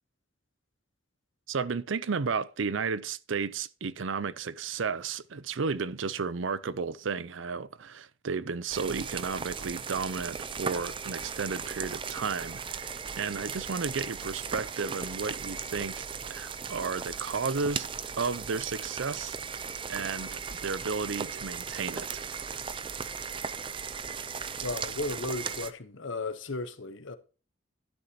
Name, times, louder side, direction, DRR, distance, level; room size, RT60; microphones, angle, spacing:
voice 1, 1.5-12.9 13.2-16.0 16.3-17.9 18.2-19.4 19.9-22.2, right 5 dB, 75° right, 0.6 m, -33 dB
sound 1, 8.7-25.7, right 6 dB, 25° right, 0.5 m, -37 dB
voice 2, 24.6-27.2, left 2 dB, 75° left, 1.0 m, -35 dB
12.0 x 9.8 x 2.9 m
head